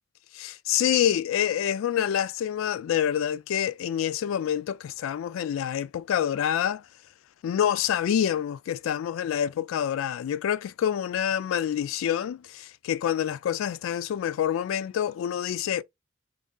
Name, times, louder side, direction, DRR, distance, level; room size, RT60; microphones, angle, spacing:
voice 1, 0.3-6.8 7.4-15.8, left 9 dB, 90° left, 0.3 m, -27 dB
3.1 x 2.6 x 3.6 m
head